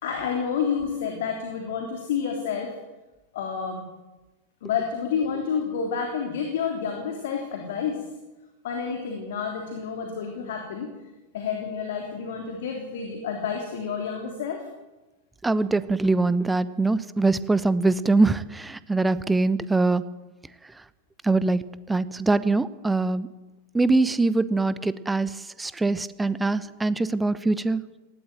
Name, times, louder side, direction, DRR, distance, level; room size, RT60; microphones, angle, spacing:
voice 1, 0.0-2.7 3.3-3.8 4.6-8.0 8.6-10.9 11.3-14.6, left 6 dB, 55° left, 2 dB, 3.4 m, -29 dB
voice 2, 15.4-20.0 21.2-21.6 21.9-23.3 23.7-25.3 25.6-27.8, right 3 dB, 10° right, 16 dB, 0.9 m, -23 dB
19.0 x 17.0 x 9.0 m, 1.1 s
figure-of-eight pair, 90°, 0 cm